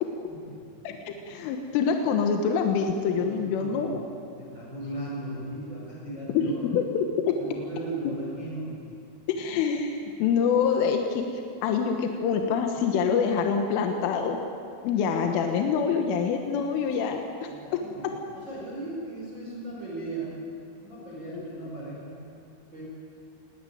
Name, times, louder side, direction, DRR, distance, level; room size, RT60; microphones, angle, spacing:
voice 1, 0.9-4.0 6.4-6.5 6.7-7.4 9.3-11.3 11.6-14.4 14.8-17.5 21.3-21.4, left 6 dB, 80° left, 4 dB, 3.7 m, -25 dB
voice 2, 3.2-3.9 4.4-6.7 7.4-8.7 17.5-18.0 18.3-20.3 20.7-22.1 22.7-22.8, right 2 dB, 25° right, -6 dB, 5.2 m, -37 dB
20.5 x 18.5 x 9.4 m, 2.6 s
omnidirectional pair, 5.7 m